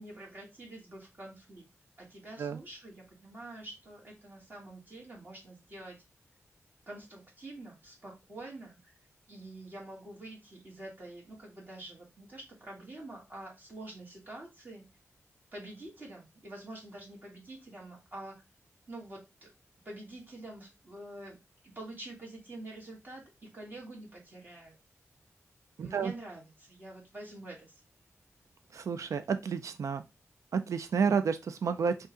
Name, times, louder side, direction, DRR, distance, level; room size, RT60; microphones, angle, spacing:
voice 1, 0.0-1.6 2.0-6.0 6.9-8.9 9.3-14.8 15.5-18.4 18.9-19.5 19.8-21.4 21.6-24.8 25.8-27.8, right 2 dB, 40° right, -2 dB, 1.6 m, -47 dB
voice 2, 25.8-26.1 28.7-30.0 30.5-32.1, right 6 dB, 85° right, 10 dB, 0.4 m, -30 dB
5.3 x 2.4 x 3.7 m, 0.24 s
wide cardioid pair, 110°, 5 cm